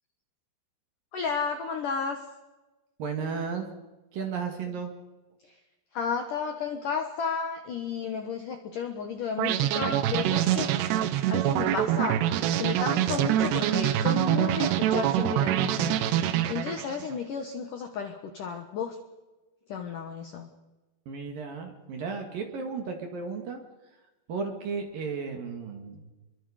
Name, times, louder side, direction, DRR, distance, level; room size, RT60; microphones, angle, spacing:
voice 1, 1.1-2.2 5.4-5.5 5.9-10.7 11.3-12.2 12.6-16.0 16.5-19.0 19.7-20.5, left 6 dB, 70° left, 6 dB, 2.0 m, -32 dB
voice 2, 3.0-3.7 4.1-4.9 21.1-23.6 24.3-26.1, right 5 dB, 55° right, 4 dB, 3.1 m, -34 dB
sound 1, 9.4-17.1, right 11 dB, 75° right, 2.7 m, -25 dB
29.5 x 23.0 x 5.1 m, 1.1 s
omnidirectional pair, 5.7 m